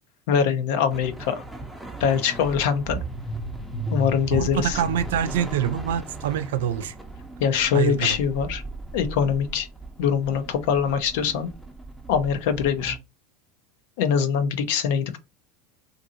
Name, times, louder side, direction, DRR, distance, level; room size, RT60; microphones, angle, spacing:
voice 1, 0.3-1.4 2.0-3.0 3.9-4.8 7.4-8.6 8.9-9.7 10.0-11.5 12.1-13.0 14.0-15.2, left 7 dB, 70° left, 0.6 m, -23 dB
sound 1, 0.9-13.0, right 2 dB, ahead, 0.7 m, -36 dB
voice 2, 4.3-6.9 7.7-8.2, right 9 dB, 85° right, 0.4 m, -25 dB
2.7 x 2.6 x 2.5 m
supercardioid pair, 115°, 0 cm